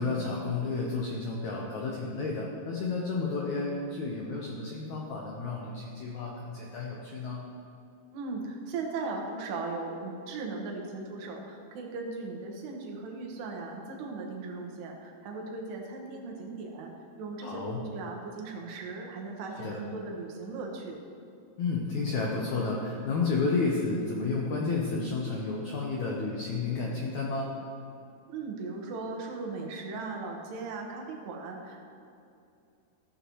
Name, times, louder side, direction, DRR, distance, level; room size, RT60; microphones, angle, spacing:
voice 1, 0.0-7.4 17.4-17.8 19.6-19.8 21.6-27.5, left 3 dB, 80° left, -2 dB, 1.7 m, -31 dB
voice 2, 8.1-16.9 17.2-21.0 28.3-31.8, right 3 dB, 85° right, 0 dB, 3.3 m, -38 dB
14.5 x 8.2 x 3.1 m, 2.6 s
omnidirectional pair, 4.6 m